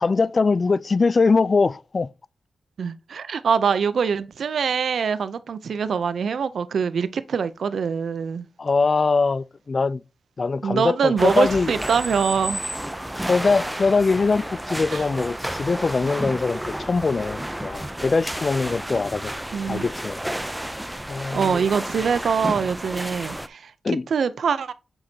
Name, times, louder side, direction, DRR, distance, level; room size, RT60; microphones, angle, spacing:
voice 1, 0.0-2.1 8.6-10.0 10.4-11.7 13.3-19.3 19.7-20.2 21.1-21.6 23.8-24.1, left 4 dB, 45° left, 0.3 m, -22 dB
voice 2, 2.8-8.5 10.6-12.7 14.9-15.0 19.5-19.9 21.3-23.7 24.1-24.7, right 6 dB, 75° right, 0.5 m, -24 dB
sound 1, 11.2-23.5, right 1 dB, 10° right, 0.5 m, -31 dB
7.7 x 6.3 x 2.8 m
cardioid pair, 65°, 0 cm